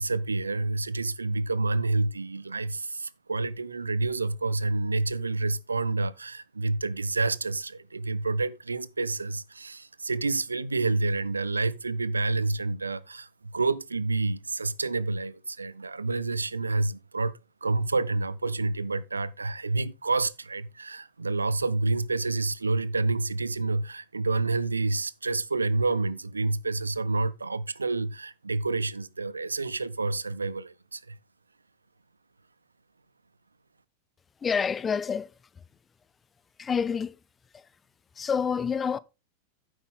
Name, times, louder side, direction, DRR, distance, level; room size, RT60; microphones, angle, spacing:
voice 1, 0.0-31.2, right 3 dB, 80° right, 0.5 m, -28 dB
voice 2, 34.4-35.3 36.6-37.2 37.5-37.7 38.2-39.0, left 6 dB, 20° left, 0.5 m, -28 dB
9.5 x 7.9 x 3.7 m
figure-of-eight pair, 90°, 0 cm